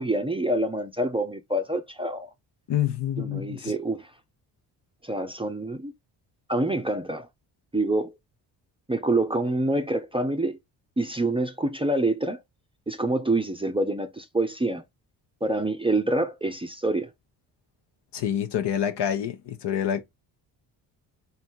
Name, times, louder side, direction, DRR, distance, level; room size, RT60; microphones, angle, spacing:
voice 1, 0.0-2.3 3.2-4.1 5.0-5.9 6.5-7.3 7.7-8.2 8.9-10.6 11.0-12.4 12.9-14.8 15.4-17.1, right 2 dB, 10° right, 0.6 m, -26 dB
voice 2, 2.7-3.7 18.1-20.0, left 10 dB, 55° left, 0.9 m, -27 dB
3.4 x 2.7 x 4.3 m
supercardioid pair, 55°, 48 cm